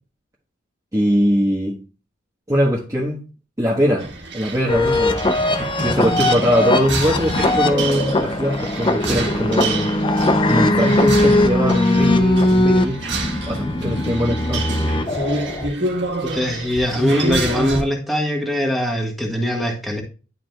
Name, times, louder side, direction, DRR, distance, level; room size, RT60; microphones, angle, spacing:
voice 1, 0.9-1.8 2.5-3.2 3.6-5.2 5.8-9.9 10.4-13.1 13.4-14.7, equal, 15° right, 1.3 m, -21 dB
sound 1, 4.0-17.8, right 2 dB, 65° right, 1.7 m, -28 dB
sound 2, 4.7-15.7, left 1 dB, 25° left, 0.6 m, -19 dB
voice 2, 16.2-20.0, left 1 dB, ahead, 1.5 m, -22 dB
11.0 x 4.9 x 2.3 m
head